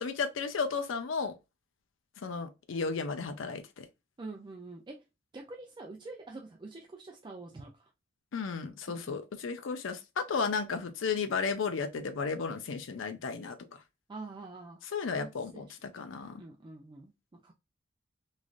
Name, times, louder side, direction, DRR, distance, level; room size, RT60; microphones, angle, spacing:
voice 1, 0.0-1.3 2.2-3.9 8.3-13.6 14.9-16.4, left 5 dB, 75° left, 0.5 m, -34 dB
voice 2, 4.2-5.1 5.3-7.9 8.9-9.2 14.1-14.8 15.2-16.0 16.3-17.5, right 3 dB, 25° right, 0.4 m, -46 dB
3.1 x 2.6 x 2.4 m
head